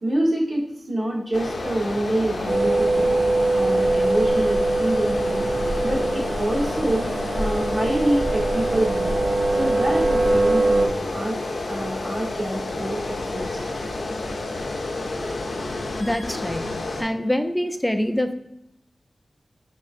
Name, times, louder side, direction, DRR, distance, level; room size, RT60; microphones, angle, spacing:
voice 1, 0.0-3.2 3.5-5.5 5.8-7.1 7.4-9.1 9.5-11.4 11.7-13.6, right 1 dB, 45° right, -3 dB, 1.1 m, -26 dB
sound 1, 1.3-17.0, left 2 dB, 65° left, 0.5 m, -30 dB
sound 2, 2.5-10.9, right 2 dB, 75° right, 0.4 m, -22 dB
voice 2, 16.0-18.3, left 1 dB, 5° left, 7 dB, 0.3 m, -25 dB
3.8 x 3.3 x 2.5 m, 0.83 s
wide cardioid pair, 95°, 0 cm